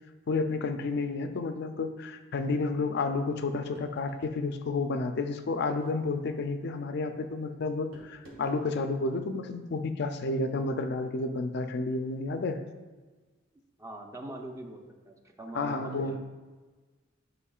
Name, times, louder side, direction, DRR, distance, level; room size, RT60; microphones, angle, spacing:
voice 1, 0.3-12.6 15.5-16.2, left 3 dB, 55° left, 8 dB, 0.4 m, -31 dB
sound 1, 3.7-4.3 5.7-6.0 7.9-8.7, right 1 dB, 90° right, 1.9 m, -52 dB
voice 2, 13.8-16.2, right 1 dB, 15° right, 3 dB, 0.6 m, -43 dB
9.8 x 5.2 x 2.4 m, 1.3 s
head